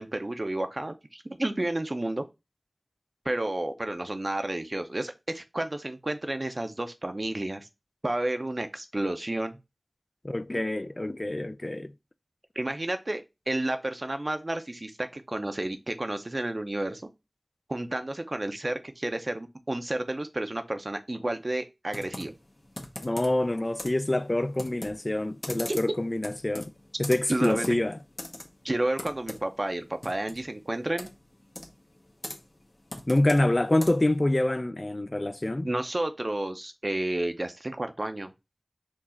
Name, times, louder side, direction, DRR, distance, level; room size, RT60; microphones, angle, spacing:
voice 1, 0.0-2.2 3.2-7.7 8.0-9.6 12.6-17.0 17.7-22.4 25.5-25.8 27.3-27.7 28.6-31.1 35.6-38.3, right 1 dB, 55° right, 0.6 m, -31 dB
voice 2, 10.2-11.9 23.0-26.7 27.0-28.0 33.1-35.7, left 1 dB, 45° left, 0.3 m, -26 dB
Computer keyboard, 21.9-34.2, left 1 dB, 60° left, 0.9 m, -43 dB
4.5 x 2.4 x 4.2 m
wide cardioid pair, 50°, 0 cm